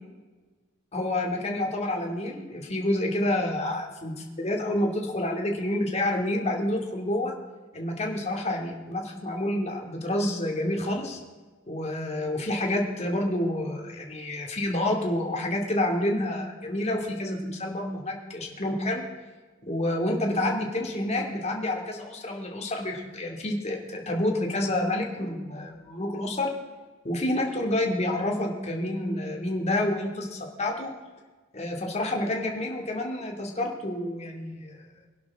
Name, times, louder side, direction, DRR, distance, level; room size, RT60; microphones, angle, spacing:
voice 1, 0.9-7.3 7.7-11.2 11.7-19.0 19.6-26.5 27.0-30.9 31.5-34.9, left 1 dB, 35° left, 1 dB, 2.7 m, -28 dB
24.0 x 11.0 x 3.8 m, 1.3 s
head